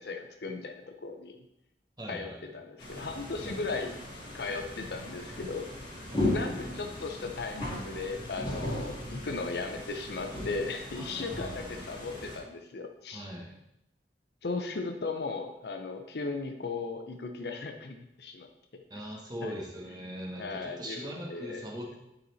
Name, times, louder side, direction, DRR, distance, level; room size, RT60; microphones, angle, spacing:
voice 1, 0.0-1.4 2.1-4.0 4.3-5.7 6.1-13.3 14.4-18.5 18.7-19.1 19.4-19.5 20.4-21.7, left 3 dB, 65° left, 5 dB, 0.6 m, -37 dB
voice 2, 2.0-2.4 3.4-3.6 6.1-6.3 10.9-11.9 13.1-13.5 18.9-22.0, equal, 25° right, -2 dB, 1.2 m, -41 dB
sound 1, 2.8-12.4, left 1 dB, 30° left, 2.2 m, -37 dB
9.5 x 4.2 x 4.1 m, 0.84 s
head